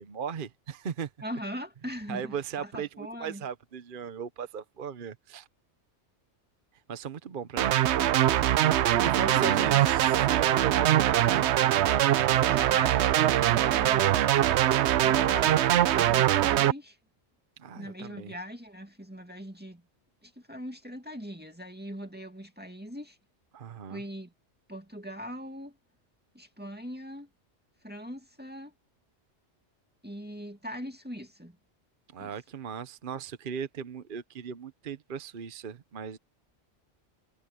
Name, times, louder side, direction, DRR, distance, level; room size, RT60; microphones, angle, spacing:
voice 1, 0.0-1.1 2.1-5.5 6.9-7.8 9.0-11.5 17.6-18.3 23.5-24.0 32.1-36.2, right 7 dB, 50° right, 1.0 m, -37 dB
voice 2, 1.2-3.4 9.2-9.9 12.5-14.2 15.0-17.0 17.7-19.8 20.2-23.2 23.9-24.3 24.7-25.8 26.3-27.3 27.8-28.7 30.0-31.6 32.2-32.3, equal, 10° right, 2.2 m, -41 dB
sound 1, 7.6-16.7, right 12 dB, 75° right, 0.9 m, -23 dB
omnidirectional pair, 1.2 m